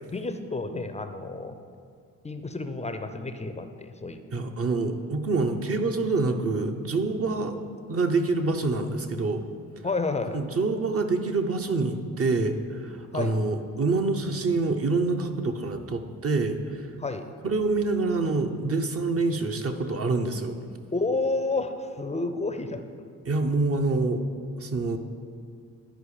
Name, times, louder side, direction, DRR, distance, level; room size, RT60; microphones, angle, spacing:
voice 1, 0.1-1.6 2.2-4.2 7.2-7.3 9.8-10.4 13.1-13.4 17.0-17.3 20.9-22.8, left 3 dB, 15° left, 8 dB, 0.6 m, -30 dB
voice 2, 4.3-7.6 7.9-9.4 10.3-16.9 17.4-20.6 23.3-24.2 24.6-25.0, right 3 dB, 35° right, 6 dB, 0.8 m, -26 dB
10.5 x 4.8 x 4.9 m, 2.2 s
hypercardioid pair, 55°, 40 cm